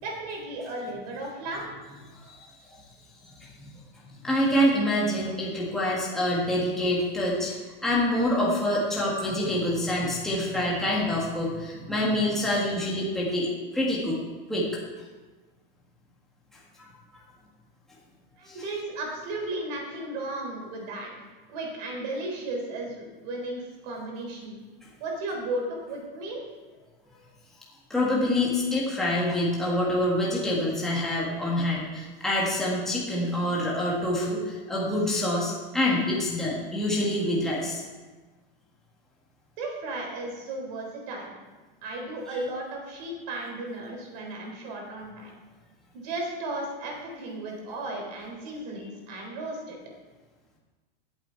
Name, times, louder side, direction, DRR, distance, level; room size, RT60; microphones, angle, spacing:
voice 1, 0.0-1.6 18.4-24.6 25.0-26.4 39.6-41.4 41.8-45.3 45.9-49.8, right 2 dB, 45° right, 0 dB, 3.9 m, -35 dB
voice 2, 2.2-2.8 3.4-3.7 4.2-14.2 14.5-14.7 16.8-16.9 17.1-17.2 18.5-18.6 27.9-37.8, left 1 dB, ahead, -6 dB, 1.7 m, -26 dB
17.0 x 8.0 x 4.6 m, 1.3 s
supercardioid pair, 180°, 29 cm